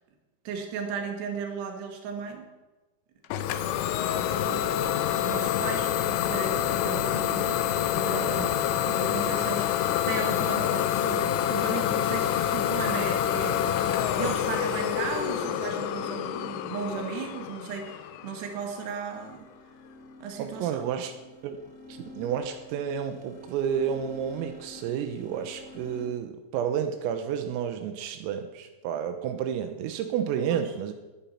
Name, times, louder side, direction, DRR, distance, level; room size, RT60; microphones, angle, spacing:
voice 1, 0.5-2.5 4.1-4.7 5.2-7.6 7.9-19.5 20.2-20.8 30.5-30.7, right 6 dB, 60° right, 3 dB, 3.8 m, -36 dB
Idling / Domestic sounds home sounds, 3.3-18.8, left 10 dB, 80° left, 3.1 m, -27 dB
sound 1, 4.2-9.6, left 3 dB, 35° left, 3.8 m, -45 dB
sound 2, 19.0-26.1, left 1 dB, 55° left, 3.9 m, -47 dB
voice 2, 20.4-21.1 21.4-21.6 21.9-30.9, right 8 dB, 85° right, 6 dB, 3.8 m, -31 dB
19.5 x 10.5 x 5.9 m, 1.1 s
omnidirectional pair, 5.9 m